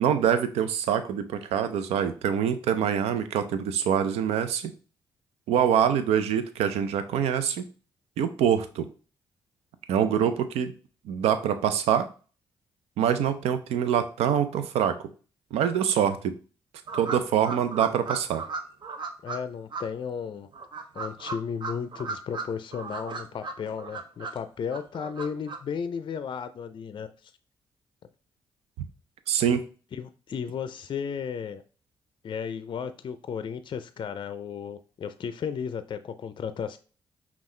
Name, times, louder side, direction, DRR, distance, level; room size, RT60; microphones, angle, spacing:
voice 1, 0.0-4.7 5.5-7.6 8.2-8.9 9.9-10.7 11.0-12.1 13.0-15.1 15.5-16.4 16.9-18.4 29.3-29.6, right 9 dB, 90° right, 10 dB, 0.5 m, -25 dB
sound 1, 16.9-19.4 19.7-19.8 20.5-22.4 22.7-24.4 24.7-25.6, right 4 dB, 50° right, 0.7 m, -35 dB
voice 2, 19.2-20.5 20.9-27.3 29.9-31.6 32.2-36.8, left 7 dB, 50° left, 11 dB, 0.4 m, -34 dB
5.5 x 2.4 x 3.2 m, 0.37 s
cardioid pair, 65°, 10 cm